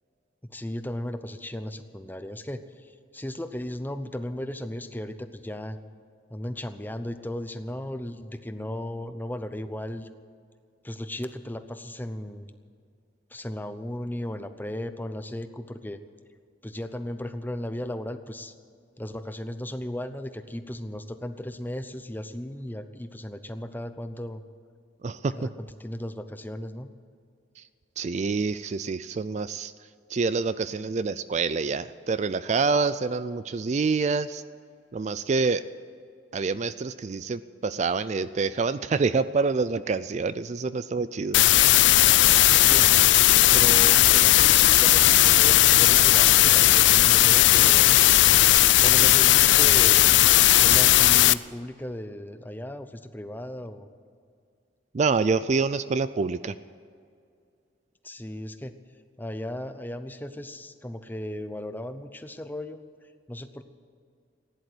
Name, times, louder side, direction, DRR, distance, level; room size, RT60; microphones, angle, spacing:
voice 1, 0.4-5.8 6.3-10.1 10.8-12.5 13.3-16.0 16.6-18.5 19.0-24.4 25.3-26.9 42.6-47.9 48.8-50.1 50.4-53.9 58.0-58.7 59.2-62.8 63.3-63.6, left 1 dB, 10° left, 9 dB, 0.7 m, -36 dB
voice 2, 25.0-25.3 27.6-27.7 28.0-29.7 30.1-34.4 34.9-35.6 36.3-41.4 54.9-56.6, right 4 dB, 35° right, 14 dB, 0.3 m, -26 dB
sound 1, 41.3-51.3, left 15 dB, 70° left, 0.4 m, -17 dB
15.5 x 10.5 x 7.9 m, 2.3 s
head